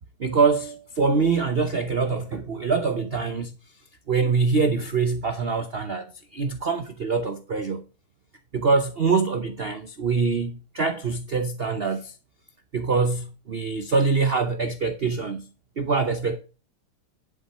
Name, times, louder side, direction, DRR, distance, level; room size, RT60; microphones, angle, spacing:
voice 1, 0.2-3.6 4.1-7.8 8.5-12.1 12.7-15.5 15.8-16.4, right 4 dB, 80° right, 0.5 m, -24 dB
10.5 x 5.9 x 5.3 m
omnidirectional pair, 2.2 m